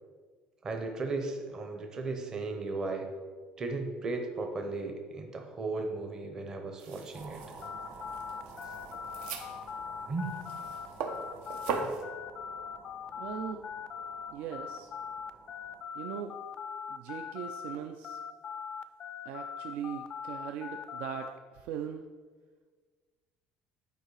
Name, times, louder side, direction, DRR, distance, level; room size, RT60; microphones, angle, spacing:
voice 1, 0.6-3.1 3.6-7.4 10.1-10.3 11.7-12.0, right 3 dB, 25° right, 4 dB, 0.8 m, -36 dB
sound 1, 6.8-12.0, right 5 dB, 85° right, 1.0 m, -40 dB
sound 2, 7.1-15.8, right 3 dB, 45° right, 1.9 m, -51 dB
sound 3, 7.6-17.8 18.0-21.3, left 7 dB, 30° left, 0.4 m, -41 dB
voice 2, 13.2-13.7 14.3-14.9 15.9-16.4 16.9-18.2 19.3-22.1, right 9 dB, 65° right, 6 dB, 0.4 m, -40 dB
9.1 x 4.9 x 4.8 m, 1.5 s
cardioid pair, 170°, 3 cm